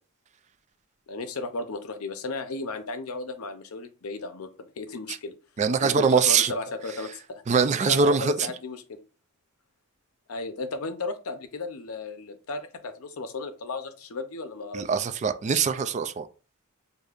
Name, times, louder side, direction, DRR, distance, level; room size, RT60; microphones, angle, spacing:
voice 1, 1.1-5.3 5.8-7.4 7.9-9.0 10.3-14.8, left 3 dB, 75° left, 0.6 m, -34 dB
voice 2, 5.6-6.5 7.5-8.5 14.7-16.3, right 5 dB, 35° right, 0.3 m, -23 dB
6.5 x 2.6 x 2.4 m
head